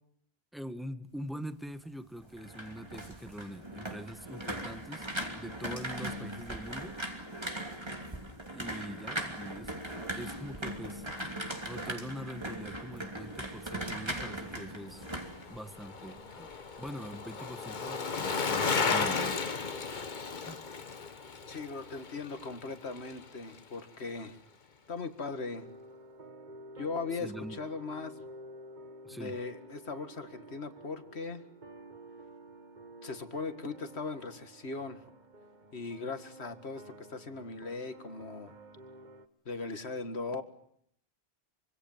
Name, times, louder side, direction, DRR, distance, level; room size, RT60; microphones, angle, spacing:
voice 1, 0.5-7.0 8.5-9.7 10.2-11.0 11.6-15.1 15.5-16.5 16.8-19.7 20.5-20.7 27.2-27.6 29.0-29.4, equal, ahead, 11 dB, 1.4 m, -43 dB
sound 1, 2.2-16.2 16.5-16.9, right 1 dB, 25° right, 3.0 m, -39 dB
Bicycle, 14.9-23.3 23.6-23.7, left 5 dB, 45° left, 1.3 m, -34 dB
voice 2, 21.5-24.4 24.9-25.7 26.8-28.1 29.1-31.4 33.0-35.0 35.7-38.5 39.5-40.4, left 4 dB, 75° left, 9 dB, 2.2 m, -39 dB
sound 2, 25.2-39.3, right 1 dB, 45° right, 1.5 m, -51 dB
25.5 x 25.0 x 7.4 m, 0.69 s
omnidirectional pair, 1.1 m